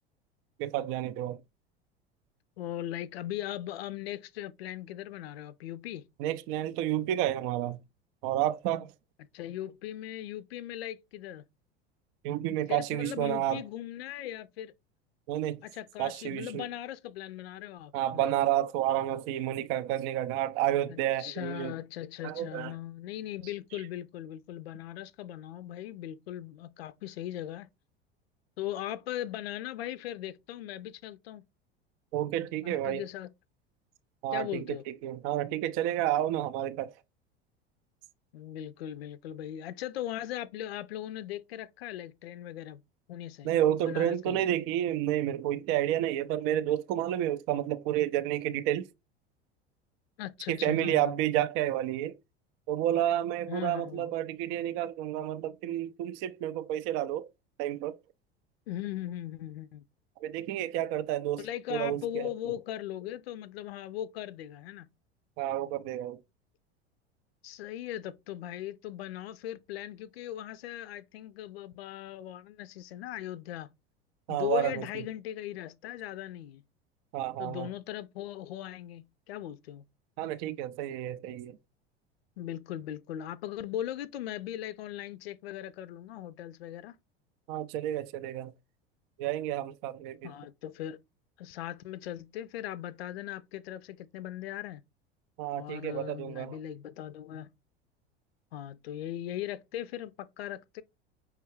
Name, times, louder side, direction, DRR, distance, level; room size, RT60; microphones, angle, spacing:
voice 1, 0.6-1.4 6.2-7.8 8.2-8.9 12.2-13.6 15.3-15.6 16.0-16.7 17.9-21.7 22.2-22.7 23.7-23.8 32.1-33.1 34.2-36.9 43.4-48.9 50.5-52.2 52.7-57.3 57.6-58.0 60.2-62.3 65.4-66.2 74.3-74.9 77.1-77.7 80.2-81.6 87.5-88.5 89.2-90.3 95.4-96.6, right 12 dB, 45° right, 0.4 m, -30 dB
voice 2, 2.6-6.1 9.3-11.4 12.7-14.7 15.6-18.3 20.9-27.7 28.6-31.4 32.6-33.3 34.3-34.8 38.3-42.8 43.1-43.5 43.8-44.4 50.2-51.1 53.5-54.1 58.7-59.8 61.4-64.9 67.4-73.7 74.3-76.6 77.4-79.8 82.4-87.0 90.2-91.0 91.4-94.8 95.5-97.5 98.5-100.8, left 12 dB, 70° left, 0.5 m, -39 dB
5.6 x 2.4 x 3.1 m
figure-of-eight pair, 80°, 32 cm